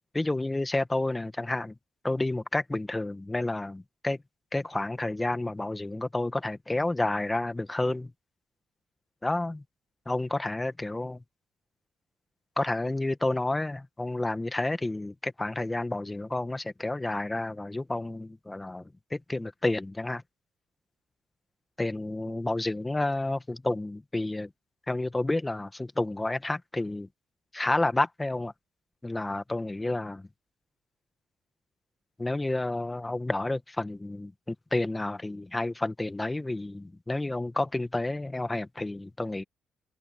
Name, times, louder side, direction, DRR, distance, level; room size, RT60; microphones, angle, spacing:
voice 1, 0.1-1.7 2.0-4.2 4.5-8.1 9.2-9.6 10.1-11.2 12.6-18.8 19.1-20.2 21.8-24.5 24.9-27.1 27.5-28.5 29.0-30.2 32.2-39.4, left 2 dB, 15° left, 1.5 m, -30 dB
cardioid pair, 90°, 0 cm